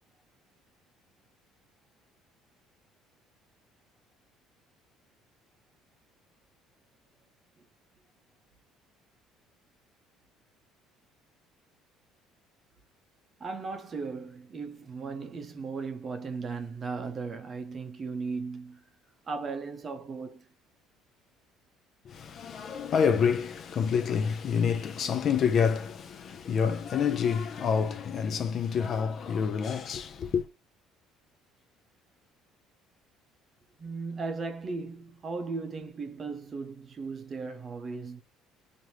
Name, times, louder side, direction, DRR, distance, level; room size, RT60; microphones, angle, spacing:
voice 1, 13.4-18.8 19.3-20.4 33.8-38.2, right 4 dB, 35° right, 0.6 m, -36 dB
voice 2, 22.1-30.4, left 6 dB, 50° left, 0.5 m, -28 dB
3.0 x 2.6 x 2.8 m
cardioid pair, 100°, 0 cm